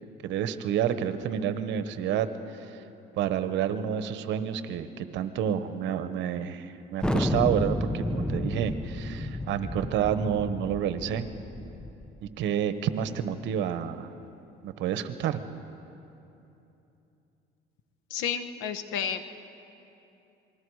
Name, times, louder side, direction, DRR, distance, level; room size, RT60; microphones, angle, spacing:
voice 1, 0.2-2.3 2.6-2.8 3.2-11.3 12.4-14.1 14.6-15.4, right 9 dB, 70° right, 11 dB, 1.1 m, -29 dB
Thunder, 7.0-12.2, left 1 dB, 5° left, 0.7 m, -31 dB
voice 2, 18.1-19.2, left 8 dB, 80° left, 9 dB, 1.2 m, -31 dB
27.0 x 21.0 x 4.8 m, 2.9 s
cardioid pair, 115°, 20 cm